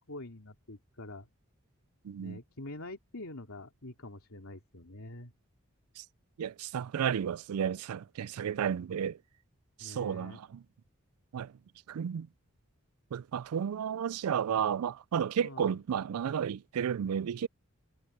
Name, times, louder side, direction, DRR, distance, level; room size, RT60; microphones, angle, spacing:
voice 1, 0.1-1.3 2.2-5.3 9.8-10.4 15.4-15.8, left 2 dB, 80° left, 2.8 m, -45 dB
voice 2, 2.0-2.4 6.0-6.1 6.4-9.2 9.8-10.6 11.3-11.5 11.9-12.3 13.1-17.5, right 8 dB, 90° right, 0.4 m, -32 dB
head